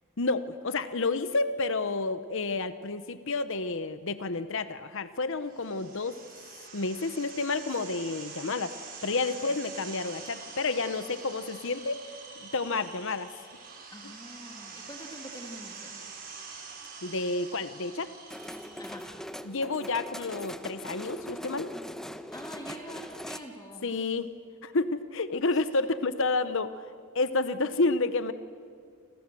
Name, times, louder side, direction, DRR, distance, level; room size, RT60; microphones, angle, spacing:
voice 1, 0.2-6.2 6.7-8.7 9.0-12.1 12.4-13.3 17.0-18.1 19.4-21.7 23.8-24.3 24.6-26.9 27.1-28.3, left 3 dB, 60° left, 12 dB, 1.0 m, -30 dB
sound 1, 5.5-19.2, right 5 dB, 40° right, 6.4 m, -45 dB
voice 2, 13.9-16.0 18.8-19.1 22.3-24.1 25.4-25.5, equal, 20° left, 2 dB, 2.4 m, -45 dB
sound 2, 18.3-23.4, equal, ahead, 0.9 m, -41 dB
29.5 x 26.5 x 7.7 m, 2.1 s
head